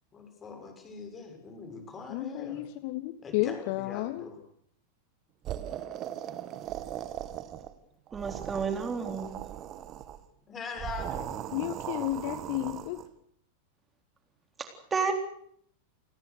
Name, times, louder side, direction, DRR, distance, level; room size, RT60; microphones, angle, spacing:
voice 1, 0.1-2.7 3.2-4.4 10.5-11.4, left 4 dB, 20° left, 5 dB, 7.0 m, -42 dB
voice 2, 2.1-4.3 11.5-13.0, left 16 dB, 45° left, 15 dB, 1.1 m, -32 dB
sound 1, 5.4-7.8 8.1-10.2 10.8-13.1, right 11 dB, 35° right, 2.0 m, -38 dB
voice 3, 8.1-9.4 14.6-15.1, right 5 dB, 15° right, 6 dB, 3.6 m, -31 dB
29.0 x 20.0 x 6.6 m, 0.66 s
figure-of-eight pair, 90°, 0 cm